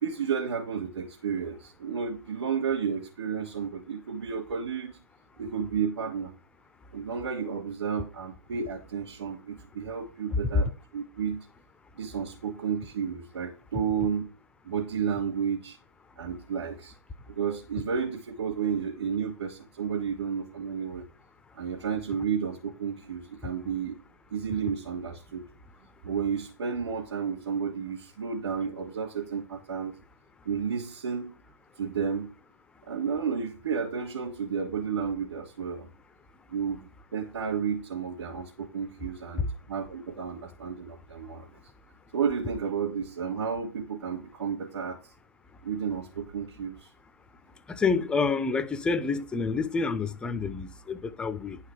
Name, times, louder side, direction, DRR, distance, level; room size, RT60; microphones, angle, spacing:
voice 1, 0.0-5.0 5.4-6.3 6.9-11.4 12.0-14.2 14.6-15.8 16.2-16.9 17.3-21.1 21.5-24.0 24.3-25.4 26.0-29.9 30.4-31.3 31.8-32.3 32.8-35.9 36.5-41.5 42.1-45.0 45.6-46.9, right 6 dB, 60° right, 3.0 m, -32 dB
voice 2, 47.7-51.6, left 4 dB, 5° left, 0.5 m, -28 dB
11.0 x 5.6 x 5.0 m
figure-of-eight pair, 130°, 16 cm